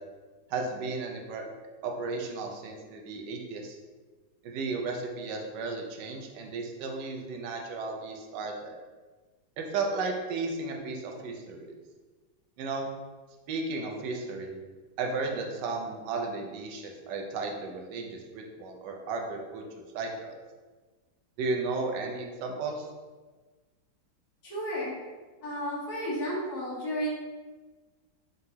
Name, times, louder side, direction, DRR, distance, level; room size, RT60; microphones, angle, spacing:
voice 1, 0.5-1.4 1.8-3.8 4.4-8.8 9.6-11.7 12.6-12.9 13.5-14.5 15.0-20.4 21.4-22.9, right 3 dB, 70° right, 2 dB, 1.2 m, -34 dB
voice 2, 24.4-25.0 25.4-27.1, equal, 55° left, -6 dB, 1.5 m, -32 dB
4.0 x 3.8 x 2.7 m, 1.3 s
omnidirectional pair, 2.0 m